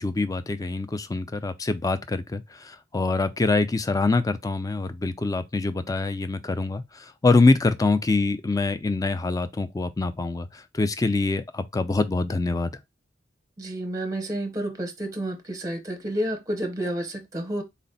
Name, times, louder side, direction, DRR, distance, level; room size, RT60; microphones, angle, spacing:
voice 1, 0.0-12.7, left 3 dB, 20° left, 0.4 m, -25 dB
voice 2, 13.6-17.6, right 1 dB, 20° right, 0.7 m, -30 dB
4.1 x 2.0 x 3.9 m
head